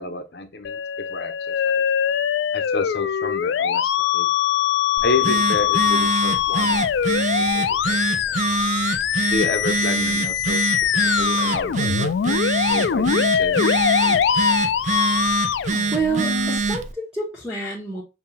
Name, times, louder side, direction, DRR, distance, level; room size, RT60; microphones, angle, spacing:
voice 1, 0.0-1.8 2.5-4.3 5.0-8.0 8.3-8.4 9.3-10.9 11.2-14.3, left 3 dB, 65° left, 0.8 m, -30 dB
Musical instrument, 0.6-16.6, left 8 dB, 90° left, 0.3 m, -22 dB
Telephone, 5.0-16.9, right 4 dB, 40° right, 0.3 m, -25 dB
voice 2, 15.9-18.0, right 3 dB, 5° right, 0.9 m, -27 dB
5.4 x 2.7 x 2.3 m
head